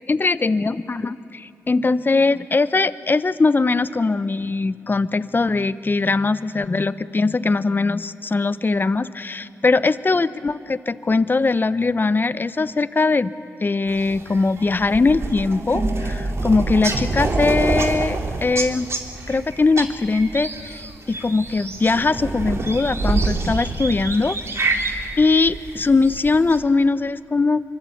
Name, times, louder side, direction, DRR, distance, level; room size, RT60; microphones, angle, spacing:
voice 1, 0.1-13.3 13.6-18.9 19.3-20.8 21.1-24.9 25.2-27.6, left 3 dB, 35° left, 14 dB, 0.9 m, -21 dB
sound 1, 13.9-26.6, right 3 dB, 50° right, 2.9 m, -26 dB
25.5 x 24.0 x 8.6 m, 2.8 s
cardioid pair, 55°, 6 cm